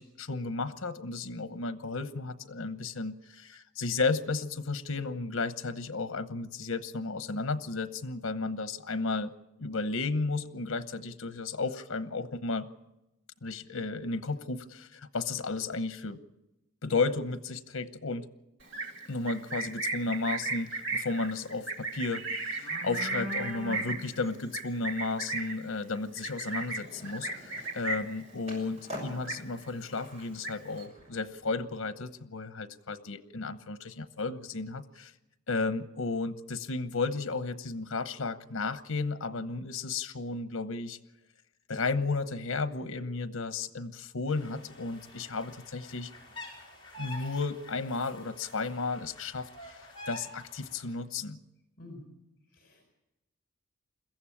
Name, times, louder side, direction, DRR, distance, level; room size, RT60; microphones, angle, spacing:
voice 1, 0.0-9.3 9.6-12.7 13.4-16.2 16.8-18.3 19.1-35.1 35.5-41.0 41.7-46.1 47.0-51.4, left 3 dB, 85° left, 12 dB, 1.0 m, -33 dB
Livestock farm animals working animals, 18.6-28.2 28.6-28.9 29.1-29.8 30.1-30.8, right 2 dB, 60° right, 2.7 m, -35 dB
Skateboard, 26.4-31.6, equal, 30° right, 6.3 m, -47 dB
sound 1, 44.3-50.9, left 1 dB, 25° left, 5.0 m, -48 dB
voice 2, 52.5-52.8, left 1 dB, 45° left, 3 dB, 4.6 m, -48 dB
22.0 x 14.5 x 8.7 m, 0.94 s
head